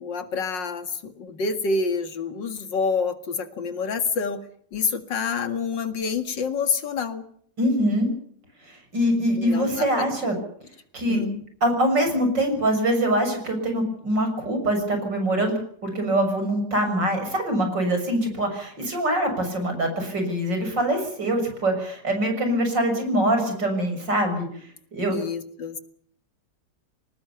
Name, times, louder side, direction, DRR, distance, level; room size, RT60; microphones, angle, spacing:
voice 1, 0.0-4.4 4.7-7.3 9.4-10.0 10.4-10.5 11.0-11.4 23.2-23.3 25.1-25.8, left 5 dB, 85° left, 9 dB, 2.7 m, -28 dB
voice 2, 7.6-8.1 8.7-10.4 10.9-11.2 11.6-15.5 15.8-24.5 24.9-25.2, right 1 dB, 80° right, 6 dB, 7.2 m, -24 dB
24.5 x 19.5 x 7.0 m, 0.63 s
omnidirectional pair, 1.9 m